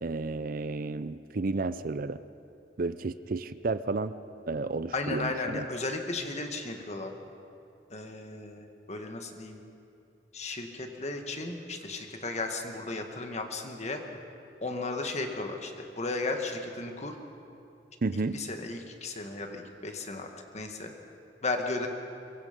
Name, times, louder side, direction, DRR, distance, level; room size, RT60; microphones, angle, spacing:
voice 1, 0.0-2.2 2.8-4.1 4.5-5.6 18.0-18.4, right 3 dB, 55° right, 13 dB, 0.6 m, -32 dB
voice 2, 4.9-7.1 7.9-9.6 10.3-14.0 14.6-17.2 18.1-20.3 20.5-20.9 21.4-21.9, left 3 dB, 40° left, 4 dB, 1.9 m, -35 dB
24.0 x 22.5 x 5.3 m, 2.6 s
head